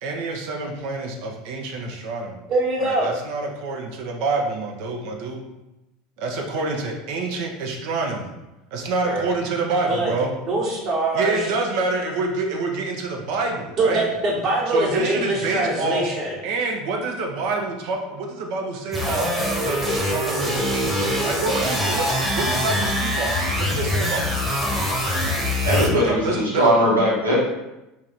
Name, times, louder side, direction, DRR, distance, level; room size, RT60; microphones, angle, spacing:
voice 1, 0.0-2.4 2.8-5.4 6.2-8.3 8.7-10.3 11.1-14.1 14.7-16.1 16.4-19.3 19.6-24.4 25.8-26.7, right 3 dB, 55° right, 1 dB, 0.5 m, -27 dB
voice 2, 2.5-3.1 9.0-9.3 9.9-10.1 10.5-11.5 13.8-16.4, right 2 dB, 40° right, -3 dB, 1.2 m, -23 dB
sound 1, 18.9-25.9, left 1 dB, 5° right, 1.0 m, -23 dB
voice 3, 25.6-27.3, equal, 85° right, -7 dB, 1.2 m, -19 dB
3.2 x 2.7 x 3.9 m, 0.98 s
figure-of-eight pair, 75°, 0 cm